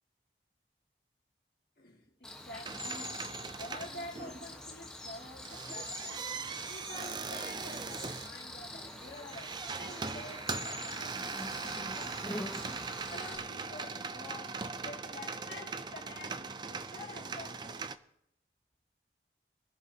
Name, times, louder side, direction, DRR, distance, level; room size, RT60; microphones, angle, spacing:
voice 1, 1.8-6.3 6.7-17.8, left 2 dB, 55° left, 2.3 m, -49 dB
Cricket, 2.2-13.4, left 1 dB, 5° left, 1.2 m, -45 dB
sound 1, 2.6-4.7 5.2-18.0, right 4 dB, 25° right, 0.4 m, -40 dB
24.5 x 11.5 x 2.8 m
head